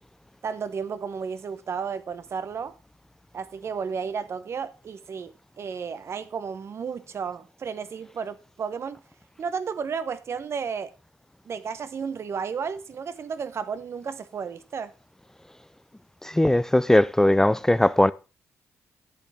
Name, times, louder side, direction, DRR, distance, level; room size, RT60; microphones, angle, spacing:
voice 1, 0.4-2.7 3.3-9.0 9.4-10.9 11.5-14.9, right 6 dB, 55° right, 0.9 m, -33 dB
voice 2, 16.2-18.1, left 1 dB, 10° left, 0.4 m, -19 dB
10.5 x 8.2 x 3.6 m
supercardioid pair, 65°, 6 cm